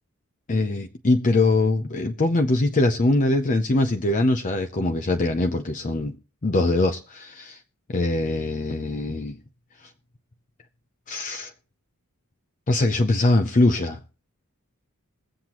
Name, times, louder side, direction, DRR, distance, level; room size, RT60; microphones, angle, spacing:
voice 1, 0.5-6.2 6.4-7.6 7.9-9.4 9.8-9.9 11.1-11.5 12.7-14.0, left 2 dB, 35° left, 0.6 m, -22 dB
21.5 x 7.8 x 3.0 m
head